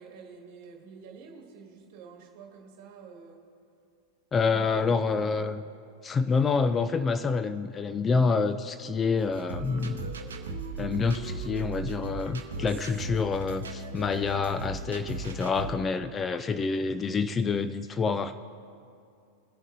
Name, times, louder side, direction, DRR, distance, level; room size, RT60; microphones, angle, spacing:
voice 1, 0.0-3.4 4.4-5.5 16.7-16.8, right 6 dB, 45° right, 0 dB, 2.0 m, -48 dB
voice 2, 4.3-5.6 6.0-10.1 10.8-18.3, left 4 dB, 20° left, 10 dB, 0.3 m, -27 dB
sound 1, 9.2-15.7, right 3 dB, 65° right, 0.9 m, -37 dB
20.5 x 7.1 x 2.7 m, 2.4 s
figure-of-eight pair, 90°, 0 cm